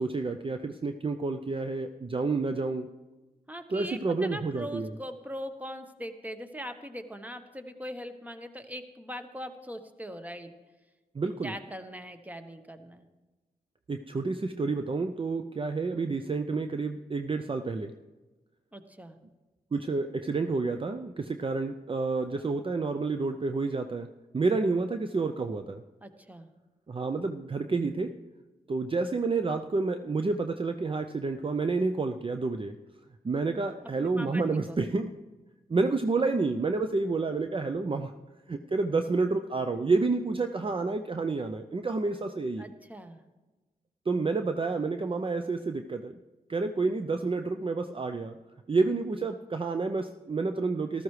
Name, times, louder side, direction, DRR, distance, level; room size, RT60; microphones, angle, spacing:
voice 1, 0.0-2.9 3.7-4.9 11.1-11.5 13.9-17.9 19.7-24.1 24.3-25.8 26.9-28.1 28.7-32.8 33.2-35.1 35.7-38.1 38.5-42.7 44.1-46.1 46.5-48.4 48.7-51.0, right 3 dB, 35° right, 7 dB, 0.5 m, -29 dB
voice 2, 3.5-10.5 11.4-13.0 18.7-19.2 26.0-26.5 34.0-34.8 42.6-43.2, equal, 10° right, 7 dB, 1.1 m, -41 dB
14.0 x 13.0 x 3.2 m, 1.2 s
cardioid pair, 55°, 16 cm